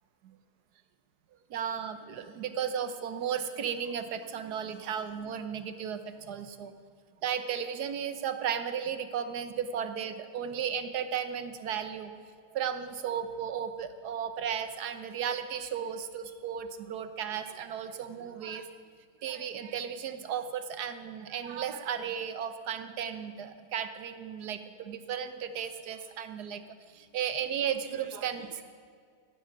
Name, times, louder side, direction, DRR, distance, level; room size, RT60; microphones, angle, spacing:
voice 1, 1.5-6.7 7.2-12.1 12.5-18.7 19.2-26.6 26.9-28.6, right 8 dB, 70° right, 10 dB, 1.4 m, -35 dB
15.0 x 8.3 x 7.4 m, 2.1 s
omnidirectional pair, 1.8 m